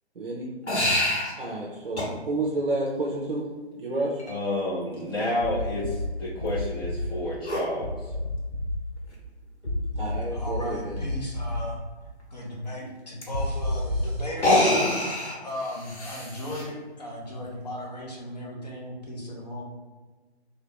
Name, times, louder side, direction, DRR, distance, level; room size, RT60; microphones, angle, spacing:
voice 1, 0.2-0.5 1.4-3.5 3.8-4.2 10.0-11.0, right 2 dB, 55° right, -3 dB, 0.7 m, -30 dB
sound 1, 0.7-1.3 2.0-2.1 4.2-4.3 7.4-7.7 9.1-9.2 9.6-9.7 10.1-10.2 13.2-13.3 14.3-16.7, left 1 dB, 85° left, 1.1 m, -25 dB
voice 2, 4.2-8.1, left 1 dB, 20° left, -11 dB, 1.3 m, -30 dB
sound 2, 5.4-6.1 6.4-7.1 7.8-8.8 9.6-10.6 10.9-11.6 13.3-14.1, left 2 dB, 5° left, 0.7 m, -30 dB
voice 3, 10.3-11.8 12.3-14.7 15.4-19.6, equal, 40° left, -2 dB, 0.9 m, -36 dB
3.5 x 2.8 x 3.3 m, 1.3 s
figure-of-eight pair, 145°, 33 cm